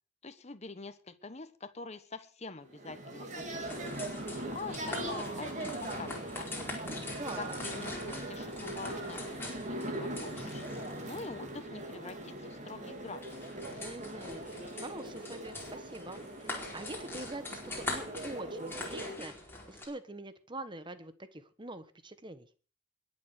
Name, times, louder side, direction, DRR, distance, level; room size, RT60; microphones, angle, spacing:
voice 1, 0.2-4.1 4.5-6.7 7.4-10.6 11.0-13.2, left 3 dB, 40° left, 11 dB, 1.2 m, -45 dB
sound 1, 2.7-19.2, right 1 dB, 45° right, 3.3 m, -41 dB
sound 2, 3.4-19.9, left 2 dB, 15° left, 4.7 m, -44 dB
voice 2, 7.2-7.5 13.8-22.5, right 2 dB, 25° right, 12 dB, 1.2 m, -44 dB
21.5 x 7.5 x 6.5 m, 0.41 s
head